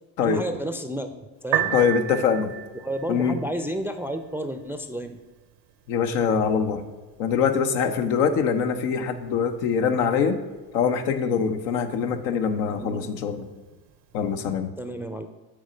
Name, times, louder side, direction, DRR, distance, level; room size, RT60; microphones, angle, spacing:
voice 1, 0.2-1.1 1.4-1.7 2.8-5.2 12.8-13.1 14.8-15.3, right 1 dB, 5° right, 8 dB, 0.4 m, -31 dB
Piano, 1.4-14.4, right 12 dB, 85° right, 0.9 m, -37 dB
voice 2, 1.7-2.5 3.1-3.4 5.9-6.8 7.2-10.4 10.7-13.5 14.1-14.7, left 6 dB, 80° left, 7 dB, 0.8 m, -23 dB
8.2 x 3.1 x 6.4 m, 1.2 s
hypercardioid pair, 65°, 50 cm